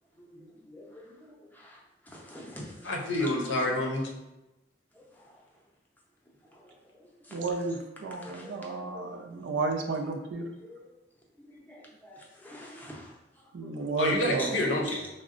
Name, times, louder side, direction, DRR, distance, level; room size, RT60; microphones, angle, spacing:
voice 1, 0.2-3.3 4.9-5.2 6.5-6.7 6.9-7.4 8.0-9.2 9.5-9.6 10.6-10.9 11.5-13.1 13.6-13.7 14.4-14.5 14.9-15.0, left 1 dB, 10° left, -3 dB, 0.5 m, -46 dB
voice 2, 2.8-4.1 14.0-15.0, left 1 dB, 75° left, 0 dB, 0.6 m, -28 dB
voice 3, 7.3-10.5 13.5-14.5, right 3 dB, 80° right, 3 dB, 0.4 m, -32 dB
3.6 x 2.1 x 2.5 m, 0.97 s
head